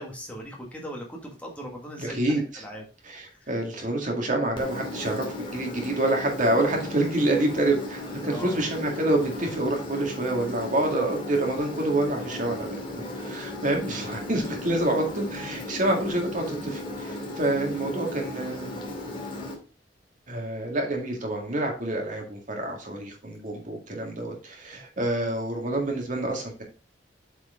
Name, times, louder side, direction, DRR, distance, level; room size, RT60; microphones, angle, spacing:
voice 1, 0.0-2.8 3.3-3.5 8.2-8.7, equal, 10° left, -1 dB, 1.8 m, -39 dB
voice 2, 2.0-2.6 3.0-18.7 20.3-26.6, right 1 dB, 45° right, 1 dB, 2.1 m, -27 dB
Engine, 4.6-19.6, left 1 dB, 30° left, 2.4 m, -36 dB
8.0 x 4.9 x 3.7 m, 0.35 s
head